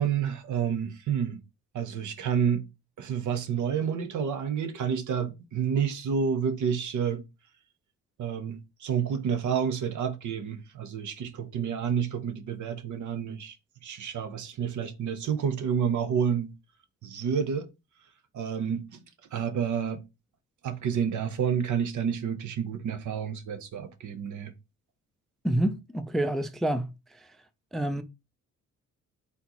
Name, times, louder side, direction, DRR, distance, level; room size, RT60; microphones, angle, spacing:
voice 1, 0.0-1.4 1.7-2.7 3.0-7.2 8.2-13.6 13.8-16.5 17.0-17.7 18.3-19.0 19.3-20.0 20.6-24.5, right 7 dB, 65° right, 0.8 m, -29 dB
voice 2, 25.4-27.3 27.7-28.0, right 1 dB, ahead, 0.4 m, -28 dB
4.3 x 4.0 x 3.0 m
cardioid pair, 100°, 32 cm